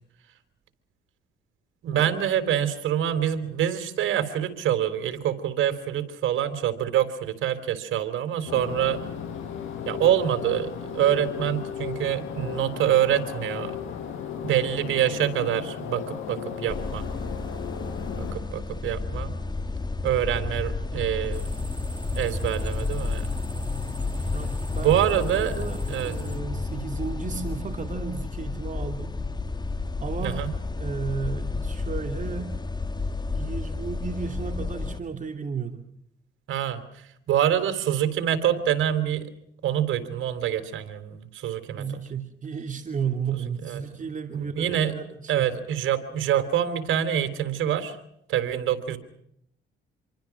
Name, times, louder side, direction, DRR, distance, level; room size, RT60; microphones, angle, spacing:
voice 1, 1.8-9.0 9.9-13.7 14.4-17.0 18.2-19.3 20.0-21.7 22.1-23.3 24.8-25.5 25.9-26.1 30.2-30.5 36.5-39.3 39.6-41.8 43.6-43.8 44.3-45.0 45.3-48.0 48.3-49.0, right 10 dB, 80° right, 9 dB, 3.7 m, -26 dB
sound 1, 8.5-18.3, left 8 dB, 85° left, 6.4 m, -35 dB
sound 2, 16.7-35.0, left 3 dB, 20° left, 1.9 m, -31 dB
sound 3, 21.3-26.4, right 1 dB, 10° right, 4.3 m, -43 dB
voice 2, 24.3-29.2 30.0-30.5 30.8-32.5 33.3-35.9 41.8-45.5, right 6 dB, 40° right, 6 dB, 2.7 m, -33 dB
28.0 x 24.0 x 6.0 m, 0.74 s
cardioid pair, 90°, 20 cm